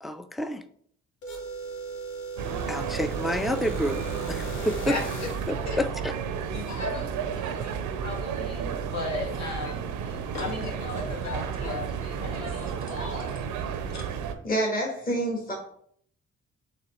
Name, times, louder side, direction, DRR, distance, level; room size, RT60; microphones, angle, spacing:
voice 1, 0.0-0.6 2.7-5.0 5.5-6.1 7.5-7.7, equal, ahead, 11 dB, 0.4 m, -29 dB
sound 1, 1.2-5.6, right 3 dB, 80° left, 1.1 m, -37 dB
sound 2, 2.4-14.3, right 7 dB, 85° right, 0.5 m, -32 dB
voice 2, 6.5-9.9 10.3-11.9 12.2-13.4 13.9-14.1, left 3 dB, 65° left, -1 dB, 1.6 m, -36 dB
Female speech woman speaking / Yell, 9.0-10.3 10.8-13.4, left 1 dB, 45° left, 1.6 m, -42 dB
voice 3, 14.4-15.5, right 1 dB, 30° left, -2 dB, 1.5 m, -27 dB
4.0 x 3.1 x 4.2 m, 0.63 s
supercardioid pair, 50°, 30 cm